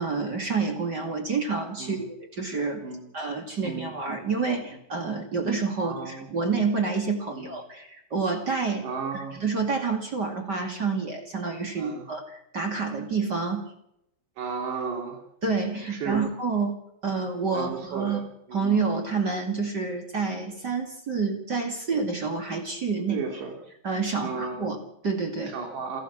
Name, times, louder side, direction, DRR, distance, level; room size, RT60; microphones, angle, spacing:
voice 1, 0.0-2.9 3.1-8.9 9.1-13.7 15.4-16.7 17.0-18.2 18.5-23.4 23.8-25.5, right 4 dB, 30° right, 4 dB, 2.3 m, -28 dB
voice 2, 5.8-6.3 7.3-7.5 8.8-9.4 11.8-12.1 14.4-15.2 15.9-16.2 17.5-18.2 18.5-18.6 23.1-23.5 24.2-24.7 25.4-26.0, right 5 dB, 85° right, 3 dB, 5.0 m, -34 dB
28.5 x 13.0 x 7.5 m, 0.80 s
omnidirectional pair, 4.8 m